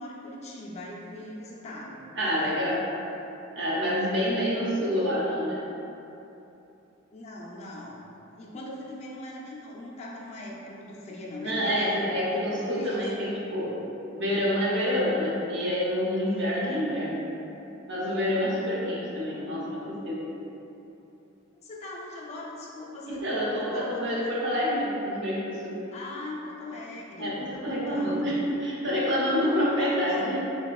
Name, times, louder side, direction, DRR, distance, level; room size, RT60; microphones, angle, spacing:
voice 1, 0.0-2.6 7.1-8.1 8.4-12.2 12.7-13.6 16.6-16.9 21.6-23.4 23.7-24.2 25.9-28.3 29.2-30.2, left 1 dB, 35° left, -4 dB, 0.4 m, -40 dB
voice 2, 2.1-2.8 3.5-5.6 11.4-13.7 14.1-17.2 17.9-20.3 23.2-25.8 27.2-30.4, equal, 60° right, -6 dB, 0.7 m, -27 dB
3.3 x 2.9 x 2.3 m, 2.9 s
head